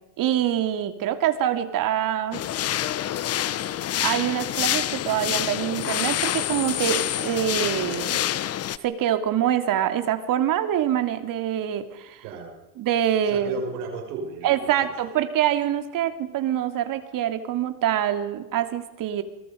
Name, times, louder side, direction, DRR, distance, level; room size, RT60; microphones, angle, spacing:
voice 1, 0.2-2.4 4.0-8.2 8.8-12.2 12.8-13.6 14.4-19.2, right 11 dB, 45° right, 8 dB, 2.8 m, -25 dB
sound 1, 2.3-8.8, left 12 dB, 35° left, 1.0 m, -27 dB
voice 2, 12.2-12.6 13.2-14.9, right 4 dB, 80° right, 2 dB, 6.1 m, -34 dB
27.0 x 23.0 x 5.2 m, 1.0 s
supercardioid pair, 110°, 45 cm